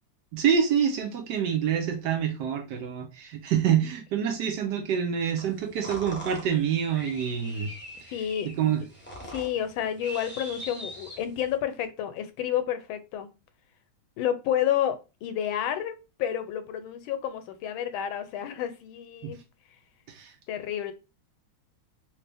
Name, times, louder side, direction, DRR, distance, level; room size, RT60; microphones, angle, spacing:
voice 1, 0.3-7.7 8.6-8.8 19.2-19.3 20.1-20.3, right 8 dB, 70° right, 1.1 m, -26 dB
sound 1, 5.4-11.6, equal, 15° left, 0.4 m, -42 dB
voice 2, 8.1-8.8 9.3-13.3 14.2-19.4 20.5-20.9, left 10 dB, 85° left, 1.4 m, -30 dB
3.1 x 3.0 x 3.3 m
omnidirectional pair, 2.2 m